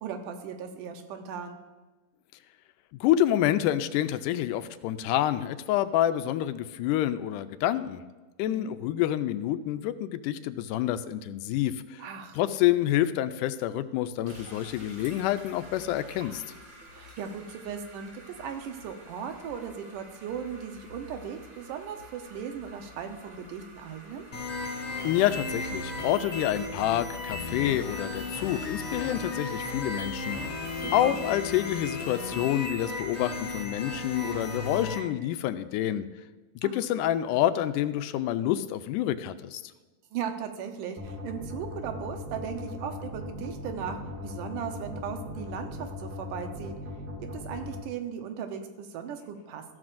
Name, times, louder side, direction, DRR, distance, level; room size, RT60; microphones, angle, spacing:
voice 1, 0.0-1.6 8.4-8.7 12.0-12.4 16.9-24.3 30.8-31.2 36.6-36.7 40.1-44.0 44.2-46.7 47.3-49.6, right 7 dB, 85° right, 6 dB, 2.4 m, -37 dB
voice 2, 2.9-8.0 8.4-12.0 12.3-16.4 25.0-30.4 30.9-36.1 36.6-39.6, left 12 dB, 85° left, 11 dB, 2.1 m, -28 dB
sound 1, 14.3-34.0, left 2 dB, 40° right, 2.2 m, -49 dB
sound 2, 24.3-35.0, left 3 dB, 50° left, 2.1 m, -35 dB
sound 3, 41.0-47.8, left 2 dB, 65° right, 4.3 m, -39 dB
14.5 x 12.0 x 2.5 m, 1.2 s
omnidirectional pair, 3.6 m